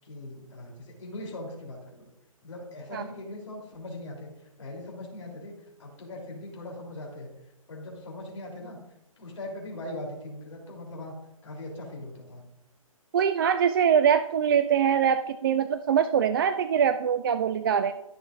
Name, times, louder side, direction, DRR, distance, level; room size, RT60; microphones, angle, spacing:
voice 1, 0.0-2.1 2.4-5.5 5.8-7.3 7.7-8.8 9.2-11.1 11.4-12.4, left 1 dB, 60° left, -1 dB, 3.2 m, -40 dB
voice 2, 13.1-17.9, right 8 dB, 40° right, 11 dB, 0.4 m, -23 dB
14.0 x 6.4 x 2.5 m, 0.88 s
figure-of-eight pair, 130°, 18 cm